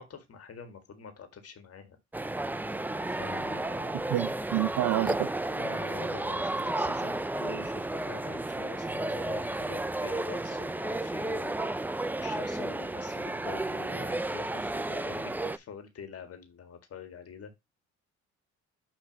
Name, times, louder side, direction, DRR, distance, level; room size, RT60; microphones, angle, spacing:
voice 1, 0.0-2.0 3.1-4.0 5.0-5.2 5.5-17.5, left 6 dB, 50° left, 1.7 m, -46 dB
sound 1, 2.1-15.6, right 2 dB, 5° right, 0.4 m, -32 dB
voice 2, 4.1-5.3, right 17 dB, 80° right, 0.5 m, -28 dB
6.2 x 3.2 x 5.8 m
cardioid pair, 90°, 30 cm